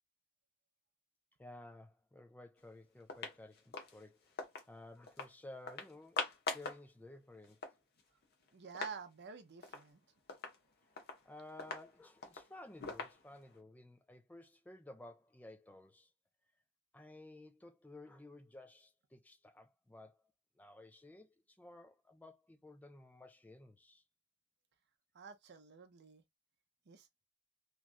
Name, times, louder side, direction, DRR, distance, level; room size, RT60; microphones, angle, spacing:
voice 1, 1.4-4.3 4.7-6.2 6.5-7.7 11.2-16.1 16.9-20.2 20.6-24.0, left 2 dB, 10° left, 0.3 m, -55 dB
sound 1, 2.6-2.7 3.0-4.7 5.1-5.3 5.7-6.8 7.2-7.3 7.4-9.0 9.3-9.4 9.6-9.9 10.3-13.6, left 4 dB, 50° left, 0.8 m, -44 dB
voice 2, 8.5-10.0 25.1-26.2 26.9-27.1, right 6 dB, 55° right, 0.6 m, -49 dB
2.9 x 2.4 x 2.5 m
head